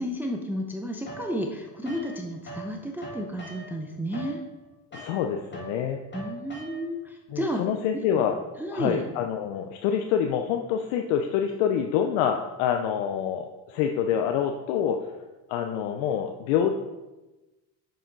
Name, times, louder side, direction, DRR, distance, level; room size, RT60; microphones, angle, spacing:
voice 1, 0.0-4.4 6.1-7.6 7.9-8.2 8.6-9.0, equal, 5° right, 2 dB, 0.6 m, -32 dB
sound 1, 1.1-2.7 3.0-7.1, right 1 dB, 25° left, 2.2 m, -42 dB
voice 2, 4.9-6.0 7.3-8.4 8.7-15.1 15.5-16.7, left 8 dB, 75° left, 5 dB, 0.7 m, -26 dB
6.7 x 6.3 x 4.0 m, 1.1 s
cardioid pair, 110°, 47 cm